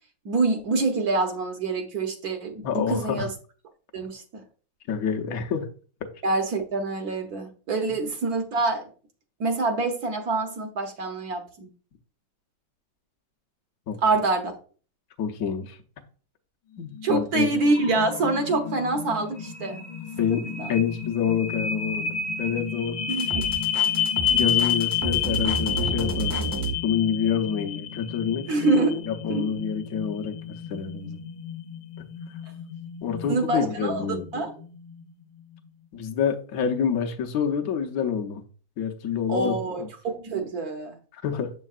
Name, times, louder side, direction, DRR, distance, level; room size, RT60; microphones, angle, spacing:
voice 1, 0.2-3.3 3.9-4.4 6.2-8.9 9.4-11.7 14.0-14.5 17.0-19.9 20.6-20.7 23.1-23.4 28.5-29.0 29.3-29.5 33.3-34.5 39.3-41.0, right 3 dB, 60° right, 1.3 m, -26 dB
voice 2, 2.6-3.3 4.9-5.7 13.9-14.0 15.2-15.8 16.8-17.5 20.2-23.1 24.3-28.5 29.1-30.4 30.7-31.2 33.0-34.3 35.9-38.4 38.8-39.9 41.1-41.5, left 7 dB, 60° left, 1.2 m, -27 dB
sound 1, 17.0-35.0, left 8 dB, 85° left, 1.4 m, -30 dB
sound 2, 23.2-26.7, right 3 dB, 20° right, 0.6 m, -30 dB
7.4 x 5.4 x 2.4 m
omnidirectional pair, 1.9 m